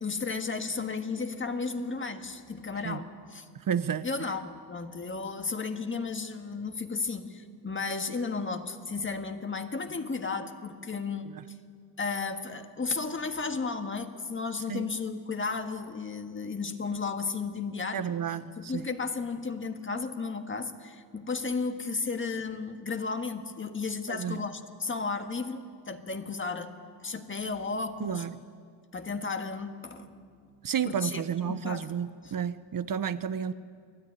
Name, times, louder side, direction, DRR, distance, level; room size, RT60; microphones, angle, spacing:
voice 1, 0.0-3.5 4.0-11.3 12.0-26.8 27.0-28.3 28.9-30.4 30.8-31.9 32.2-32.3, left 4 dB, 30° left, 7 dB, 1.6 m, -34 dB
voice 2, 3.7-4.0 14.7-14.8 17.9-18.4 24.1-24.4 28.0-28.3 30.6-33.5, right 8 dB, 55° right, 13 dB, 0.8 m, -31 dB
29.0 x 20.0 x 9.9 m, 2.1 s
wide cardioid pair, 145°, 41 cm